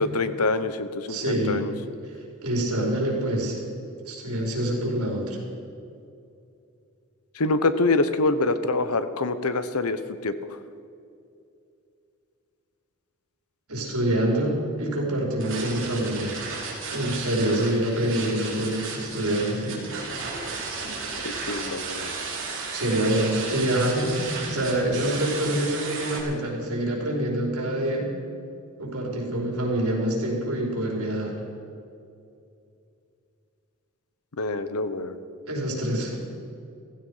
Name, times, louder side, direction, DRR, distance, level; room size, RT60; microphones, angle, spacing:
voice 1, 0.0-1.7 7.3-10.3 21.5-22.1 34.4-35.2, left 3 dB, 85° left, 12 dB, 1.0 m, -25 dB
voice 2, 1.1-1.6 2.4-3.6 4.0-5.4 13.7-16.4 16.9-19.8 22.7-28.1 28.8-31.4 35.5-36.1, right 1 dB, 85° right, -1 dB, 5.0 m, -26 dB
sound 1, 15.4-26.2, right 4 dB, 60° right, 4.1 m, -34 dB
16.0 x 16.0 x 5.6 m, 2.5 s
head